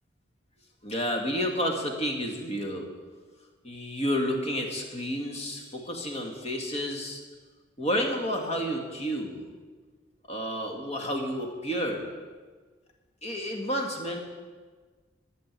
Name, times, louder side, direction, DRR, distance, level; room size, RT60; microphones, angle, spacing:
voice 1, 0.8-2.9 3.6-7.2 7.8-9.5 10.3-12.1 13.2-14.3, equal, 35° left, 2 dB, 1.8 m, -30 dB
12.5 x 6.8 x 8.1 m, 1.4 s
head